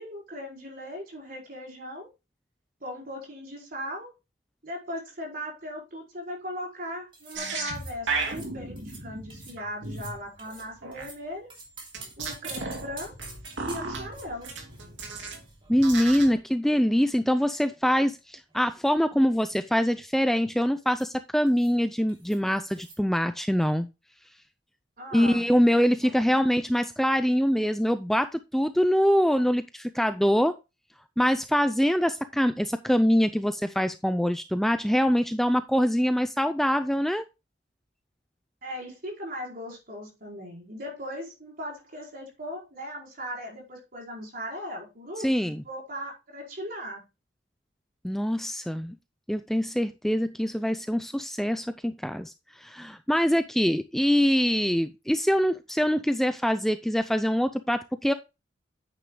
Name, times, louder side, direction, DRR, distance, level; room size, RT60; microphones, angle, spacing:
voice 1, 0.0-2.1 2.8-4.1 4.6-11.5 12.2-13.1 13.6-14.5 25.0-25.5 26.0-26.2 38.6-47.0, equal, 50° right, 4.5 m, -38 dB
sound 1, 7.1-7.4 7.7-7.9 8.2-8.5 8.8-9.0 9.3-9.6 9.8-11.2 11.5-16.2 16.4-16.5 17.3-18.2 18.5-18.8 19.0-19.5 20.9-21.1 21.5-21.8 22.1-22.4 22.7-23.0, right 3 dB, 30° right, 3.0 m, -48 dB
sound 2, 7.3-11.1 11.9-15.4 15.7-16.4, right 3 dB, 90° right, 2.9 m, -35 dB
voice 2, 15.7-23.9 25.1-30.5 31.2-37.3 45.2-45.6 48.0-48.9 49.3-58.1, equal, ahead, 0.4 m, -24 dB
9.5 x 9.1 x 2.2 m
head